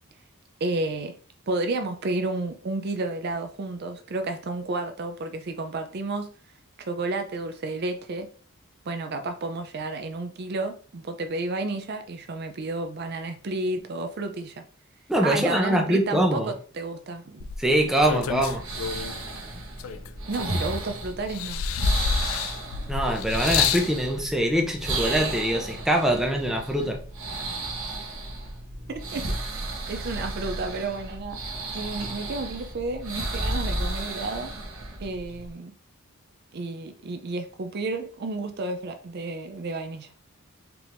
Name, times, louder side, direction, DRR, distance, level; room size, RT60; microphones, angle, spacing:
voice 1, 0.6-1.2 1.5-6.3 6.8-8.3 8.9-14.6 15.2-17.5 20.3-21.6 28.9-29.3 29.9-31.4 31.7-34.5 35.0-35.7 36.5-40.1, right 2 dB, 50° right, 0.4 m, -31 dB
voice 2, 15.1-16.5 17.6-18.6 22.9-27.0, right 1 dB, ahead, 0.6 m, -23 dB
sound 1, 17.4-19.2 19.8-20.9 21.3-23.9 24.8-24.9, left 7 dB, 75° left, 0.3 m, -28 dB
sound 2, 18.0-35.5, right 2 dB, 85° right, 1.0 m, -33 dB
4.5 x 3.5 x 2.5 m
head